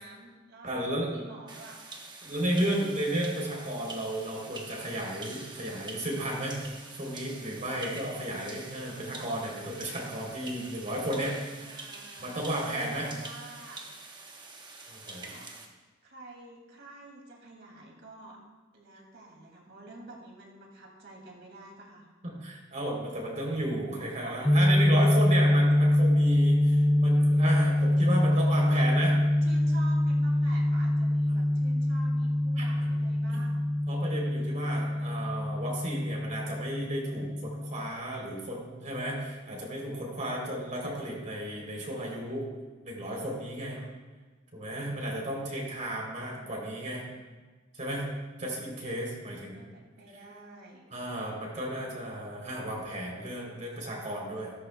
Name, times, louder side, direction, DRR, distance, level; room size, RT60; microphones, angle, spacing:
voice 1, 0.0-1.8 2.3-3.0 11.6-13.9 15.0-15.5 16.0-18.4 18.7-22.1 23.3-23.6 24.2-24.7 28.3-33.7 34.6-35.4 36.0-36.1 40.4-40.5 43.7-43.9 45.8-46.5 49.5-51.1, right 2 dB, 60° right, 0 dB, 2.6 m, -50 dB
voice 2, 0.6-1.1 2.2-11.8 12.2-13.1 14.9-15.3 22.2-29.1 31.3-31.4 32.6-32.9 33.3-33.4 33.9-42.5 42.8-43.8 44.5-47.0 47.7-48.1 48.4-49.7 50.9-54.5, right 1 dB, 40° right, -2 dB, 3.5 m, -33 dB
sound 1, 1.5-15.7, right 3 dB, 20° right, 1.1 m, -46 dB
sound 2, 24.4-37.9, left 1 dB, 5° left, 0.3 m, -25 dB
14.5 x 13.5 x 2.3 m, 1.3 s
head